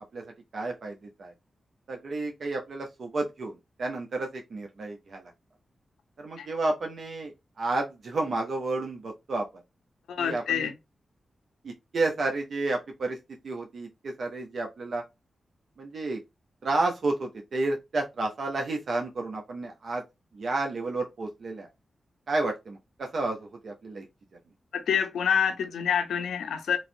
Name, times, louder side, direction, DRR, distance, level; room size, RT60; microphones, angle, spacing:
voice 1, 0.5-1.3 1.9-5.3 6.2-9.5 10.2-10.7 11.6-13.2 13.4-15.0 15.8-16.2 16.6-20.0 20.3-21.7 22.3-24.1, right 2 dB, 70° right, 0.5 m, -31 dB
voice 2, 10.1-10.7 24.7-26.8, left 7 dB, 90° left, 0.4 m, -27 dB
3.1 x 2.5 x 2.6 m
supercardioid pair, 45°, 0 cm